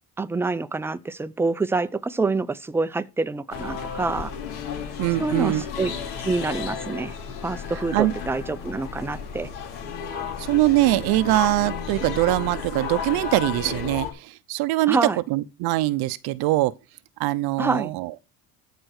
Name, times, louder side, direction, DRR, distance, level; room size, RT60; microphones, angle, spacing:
voice 1, 0.2-4.3 5.2-5.9 6.2-7.1 7.4-9.5 14.9-15.2 17.6-17.9, right 3 dB, 5° right, 0.5 m, -26 dB
sound 1, 3.5-14.1, left 6 dB, 80° left, 3.2 m, -33 dB
voice 2, 5.0-5.6 7.9-8.1 10.4-15.0 15.3-16.7 17.2-18.1, right 17 dB, 75° right, 0.7 m, -22 dB
12.5 x 4.4 x 6.4 m
cardioid pair, 125°, 38 cm